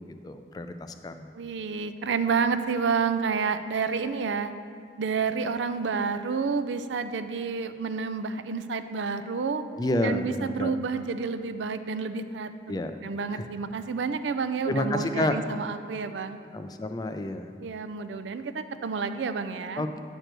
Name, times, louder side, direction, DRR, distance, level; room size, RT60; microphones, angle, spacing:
voice 1, 0.0-1.3 9.8-10.7 12.7-12.9 13.3-13.5 14.7-15.4 16.5-17.5 19.8-20.0, left 1 dB, 20° left, 8 dB, 0.3 m, -30 dB
voice 2, 1.3-4.5 5.0-9.6 10.0-12.5 12.8-16.4 17.6-19.9, right 5 dB, 85° right, 10 dB, 0.4 m, -29 dB
9.0 x 4.5 x 6.5 m, 2.3 s
head